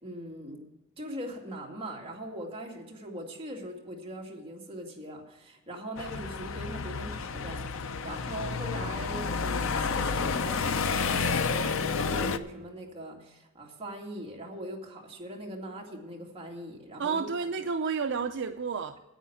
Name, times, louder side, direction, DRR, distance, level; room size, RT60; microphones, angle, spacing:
voice 1, 0.0-0.6 1.0-17.2, right 1 dB, 25° right, -1 dB, 2.1 m, -41 dB
sound 1, 6.0-12.4, left 5 dB, 70° left, 0.6 m, -30 dB
voice 2, 17.0-19.0, right 5 dB, 60° right, 7 dB, 0.5 m, -30 dB
10.0 x 8.5 x 7.1 m, 1.1 s
head